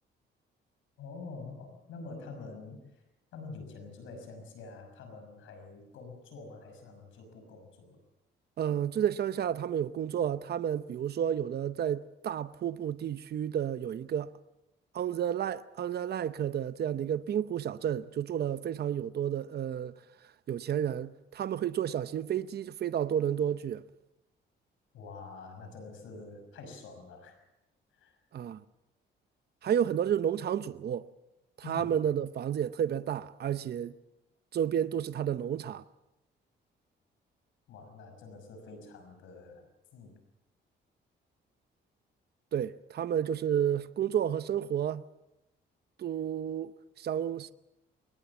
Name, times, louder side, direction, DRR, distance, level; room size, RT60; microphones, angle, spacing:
voice 1, 1.0-3.0 3.3-8.0 24.9-27.4 27.9-28.2 31.6-31.9 37.7-39.7 39.9-40.2, left 3 dB, 85° left, 5.9 m, -46 dB
voice 2, 8.6-14.3 14.9-19.9 20.5-23.8 28.3-28.6 29.6-31.1 31.7-33.9 34.5-35.8 42.5-45.0 46.0-47.5, right 9 dB, 55° right, 0.8 m, -31 dB
22.5 x 20.0 x 7.2 m
cardioid pair, 90°, 20 cm